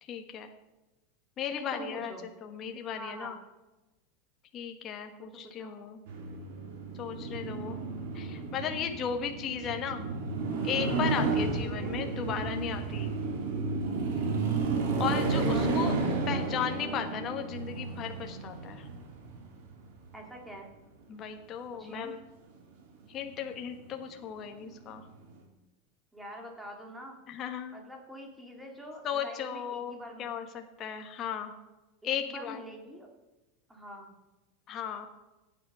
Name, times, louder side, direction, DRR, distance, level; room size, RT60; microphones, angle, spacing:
voice 1, 0.1-0.5 1.4-2.1 2.4-3.4 4.5-6.0 6.9-7.8 8.1-10.1 10.6-13.1 15.0-15.9 16.3-18.9 21.1-22.2 23.1-25.1 27.3-27.8 29.0-31.5 32.0-32.6 34.7-35.1, left 8 dB, 30° left, 5 dB, 1.3 m, -36 dB
voice 2, 1.5-2.3 3.0-3.3 5.6-5.7 11.6-11.9 15.5-15.7 20.1-20.7 21.7-22.1 26.1-27.2 27.7-30.3 32.0-33.1 33.7-34.1, right 1 dB, 5° right, 1 dB, 2.9 m, -45 dB
sound 1, 6.1-20.1 24.5-24.9, right 3 dB, 65° right, 3.5 m, -32 dB
15.5 x 9.5 x 6.2 m, 1.1 s
supercardioid pair, 145°, 0 cm